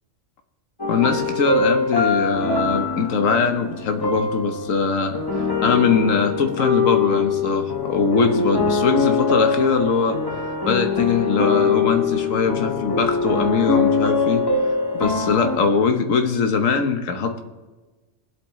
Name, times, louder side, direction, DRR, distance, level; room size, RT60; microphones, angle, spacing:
sound 1, 0.8-15.6, left 4 dB, 20° left, 1.3 m, -23 dB
voice 1, 0.9-5.2 5.6-10.2 10.6-14.4 14.9-17.4, left 5 dB, 75° left, 6 dB, 1.4 m, -21 dB
21.0 x 8.0 x 3.1 m, 1.2 s
omnidirectional pair, 1.4 m